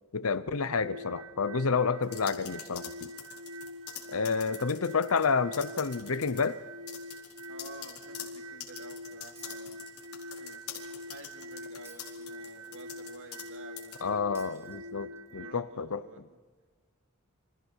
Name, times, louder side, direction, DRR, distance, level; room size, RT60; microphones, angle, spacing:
voice 1, 0.1-3.1 4.1-6.6 14.0-16.0, left 5 dB, 70° left, 15 dB, 0.8 m, -29 dB
sound 1, 0.6-15.5, left 1 dB, 90° right, 1.1 m, -44 dB
sound 2, 2.0-5.3 5.5-6.5 6.9-13.5 13.8-14.0, left 9 dB, 85° left, 4.4 m, -44 dB
voice 2, 7.5-10.6 11.1-14.0 15.3-16.4, right 2 dB, 60° right, 4 dB, 2.7 m, -51 dB
Shatter, 9.4-10.3 11.9-12.9 14.4-15.3, right 2 dB, 10° right, 2.6 m, -58 dB
28.5 x 26.0 x 4.7 m, 1.5 s
head